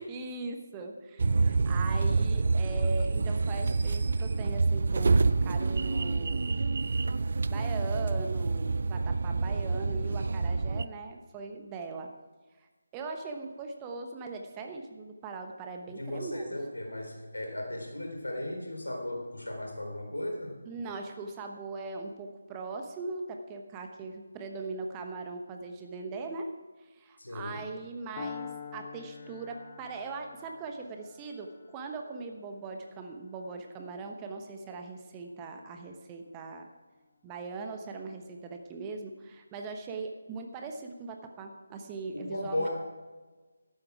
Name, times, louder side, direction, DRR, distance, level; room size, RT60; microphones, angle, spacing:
voice 1, 0.0-6.5 7.5-12.1 12.6-12.7 12.9-16.6 20.7-26.5 26.8-36.7 37.2-42.7, right 3 dB, 15° right, 4 dB, 1.1 m, -40 dB
sound 1, 1.2-10.9, right 3 dB, 50° right, 0.5 m, -27 dB
voice 2, 15.9-20.6 27.2-27.6 42.1-42.7, left 1 dB, 80° left, 1 dB, 3.7 m, -36 dB
Piano, 28.2-36.1, left 6 dB, 35° left, 1.3 m, -47 dB
14.0 x 12.0 x 4.8 m, 1.3 s
figure-of-eight pair, 155°, 0 cm